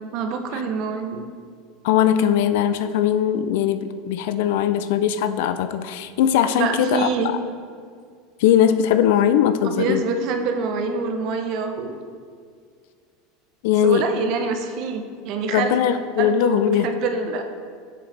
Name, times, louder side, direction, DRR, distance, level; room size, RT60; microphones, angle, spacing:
voice 1, 0.1-1.3 6.6-7.3 9.7-12.0 13.8-15.8 16.2-17.4, right 4 dB, 45° right, 5 dB, 0.7 m, -26 dB
voice 2, 1.8-7.4 8.4-10.0 13.6-14.1 15.5-16.9, left 9 dB, 65° left, 11 dB, 0.4 m, -20 dB
7.8 x 6.4 x 3.3 m, 2.1 s
supercardioid pair, 160°, 0 cm